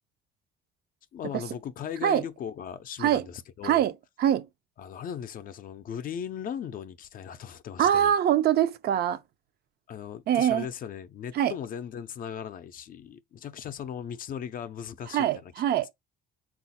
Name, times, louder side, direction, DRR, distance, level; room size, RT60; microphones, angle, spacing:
voice 1, 1.1-3.9 4.8-8.1 9.9-15.5, left 8 dB, 45° left, 0.4 m, -38 dB
voice 2, 3.6-4.5 7.8-9.2 10.3-10.7 11.3-11.5 15.1-15.9, right 10 dB, 55° right, 0.5 m, -23 dB
3.9 x 2.4 x 4.0 m
cardioid pair, 110°, 20 cm